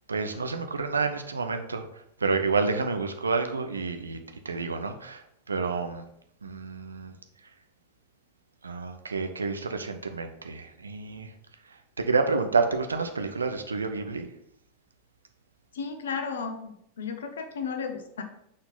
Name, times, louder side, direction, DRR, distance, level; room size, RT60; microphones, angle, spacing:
voice 1, 0.1-1.8 2.2-4.2 4.4-6.1 6.4-7.2 8.6-11.3 12.0-14.3, right 4 dB, 75° right, 6 dB, 0.6 m, -29 dB
voice 2, 15.7-18.2, left 5 dB, 65° left, 6 dB, 0.8 m, -34 dB
6.3 x 3.9 x 3.8 m, 0.74 s
figure-of-eight pair, 90°, 0 cm